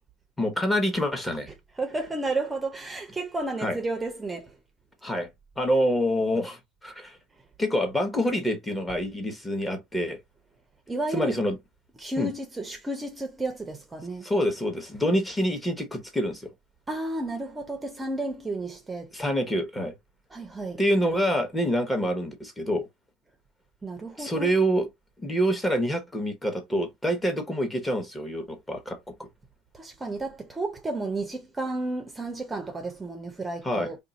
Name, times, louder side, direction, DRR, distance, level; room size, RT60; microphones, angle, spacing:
voice 1, 0.4-1.5 3.6-3.8 5.0-5.3 5.6-7.2 7.6-10.2 11.1-11.6 12.2-12.3 14.2-16.5 19.1-19.9 20.8-22.9 24.2-24.9 25.2-29.0 33.6-33.9, equal, 10° left, 1.0 m, -26 dB
voice 2, 1.8-4.6 10.9-11.4 12.0-14.3 16.9-19.1 20.3-20.8 23.8-24.6 29.7-34.0, right 2 dB, 15° right, 0.7 m, -32 dB
2.6 x 2.4 x 4.0 m
supercardioid pair, 110°, 0 cm